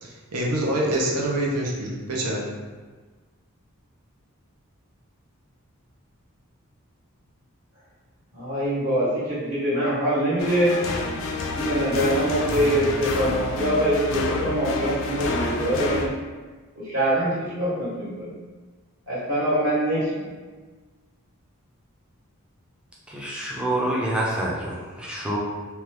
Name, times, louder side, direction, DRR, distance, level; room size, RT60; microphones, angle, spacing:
voice 1, 0.0-2.4, right 1 dB, 85° right, -3 dB, 0.7 m, -26 dB
voice 2, 8.3-10.8 11.5-16.1 16.8-18.3 19.1-20.1, right 1 dB, 60° right, -11 dB, 1.4 m, -24 dB
sound 1, 10.4-16.1, left 3 dB, 60° left, 0.3 m, -28 dB
voice 3, 23.1-25.4, right 1 dB, 5° right, -5 dB, 0.4 m, -27 dB
2.8 x 2.3 x 3.3 m, 1.4 s
head